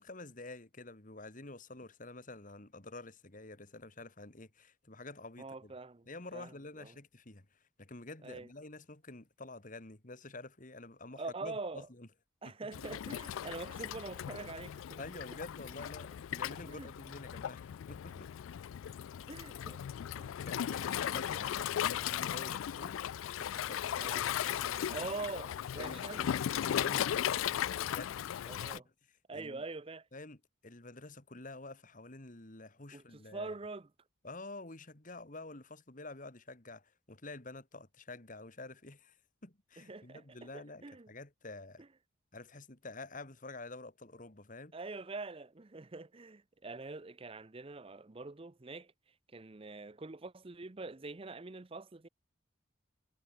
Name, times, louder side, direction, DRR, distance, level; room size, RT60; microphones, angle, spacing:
voice 1, 0.0-5.7 6.1-12.1 12.4-12.8 15.0-18.3 20.4-23.0 23.4-23.9 24.4-25.1 25.8-27.5 27.8-28.3 28.7-28.8 29.3-29.6 30.1-30.4 30.6-33.5 34.2-39.2 39.4-41.8 42.3-44.8, left 2 dB, 40° left, 2.1 m, -49 dB
voice 2, 5.4-6.1 6.3-6.9 8.2-8.5 11.2-11.9 12.4-15.0 16.7-16.9 19.3-19.8 20.2-20.3 24.0-24.3 24.9-26.2 28.5-28.8 29.3-30.1 32.9-33.9 39.8-41.1 44.7-48.9 49.3-52.1, right 3 dB, 30° right, 0.7 m, -44 dB
Waves surf, 12.7-28.8, left 10 dB, 90° left, 0.3 m, -37 dB
head